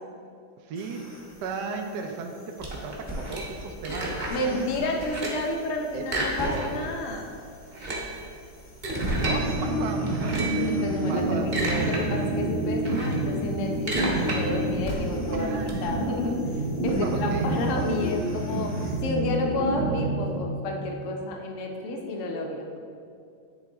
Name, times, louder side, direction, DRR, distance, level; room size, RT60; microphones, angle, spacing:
voice 1, 0.6-1.1 1.4-4.9 5.9-6.7 9.2-11.5 15.3-15.9 16.2-16.3 16.9-17.6, right 4 dB, 70° right, 3 dB, 1.1 m, -35 dB
sound 1, 0.7-19.0, equal, 20° left, 0.5 m, -42 dB
sound 2, 2.6-4.5 4.8-5.5 6.0-6.9 7.2-7.3 7.6-9.4 10.0-10.7 11.2-12.0 12.4-15.7, right 1 dB, 35° right, 1.1 m, -32 dB
voice 2, 4.3-7.3 10.7-16.4 16.8-22.7, left 1 dB, 60° left, 2 dB, 0.8 m, -30 dB
sound 3, 9.0-20.9, right 1 dB, 90° right, 1.7 m, -28 dB
10.0 x 4.1 x 3.4 m, 2.4 s
omnidirectional pair, 2.2 m